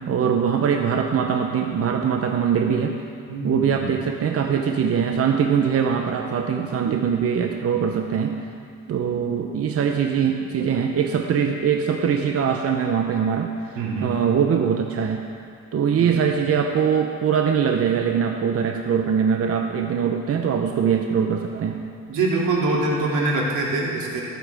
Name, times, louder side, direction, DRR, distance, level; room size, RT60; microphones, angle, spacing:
voice 1, 0.1-2.9 3.4-8.4 8.9-15.3 15.7-21.8, right 7 dB, 50° right, 3 dB, 0.8 m, -22 dB
voice 2, 3.3-3.9 9.2-9.3 13.7-14.2 16.0-16.2 22.1-24.2, right 2 dB, 85° right, -3 dB, 2.6 m, -24 dB
19.5 x 9.1 x 3.5 m, 2.3 s
cardioid pair, 90°, 30 cm